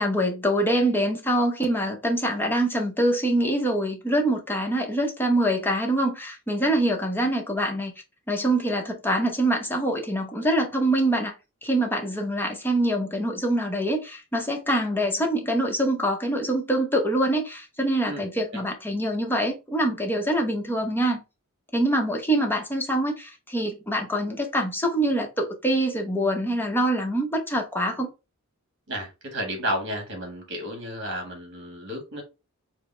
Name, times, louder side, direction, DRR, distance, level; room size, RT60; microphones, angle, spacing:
voice 1, 0.0-7.9 8.3-11.3 11.6-21.2 21.7-28.1, right 1 dB, 10° left, 0.7 m, -24 dB
voice 2, 28.9-32.2, equal, 55° right, 1.5 m, -32 dB
5.0 x 2.0 x 3.2 m
head